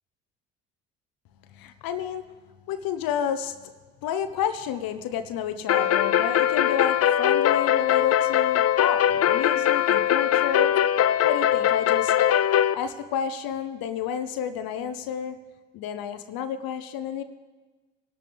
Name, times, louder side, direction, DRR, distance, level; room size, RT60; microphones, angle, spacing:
voice 1, 1.5-2.3 2.7-3.6 4.0-10.7 11.2-12.1 12.7-15.4 15.7-17.2, left 8 dB, 65° left, 10 dB, 1.0 m, -30 dB
sound 1, 5.7-12.7, left 10 dB, 40° left, 0.6 m, -21 dB
24.0 x 12.0 x 3.5 m, 1.3 s
hypercardioid pair, 60°, 38 cm